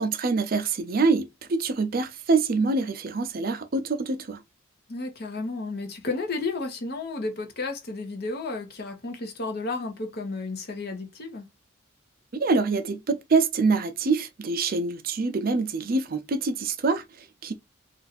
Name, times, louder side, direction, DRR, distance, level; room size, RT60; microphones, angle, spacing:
voice 1, 0.0-4.4 12.4-17.5, right 4 dB, 45° right, 0.5 m, -25 dB
voice 2, 4.9-11.4, left 3 dB, 50° left, 0.8 m, -32 dB
2.6 x 2.4 x 4.0 m
head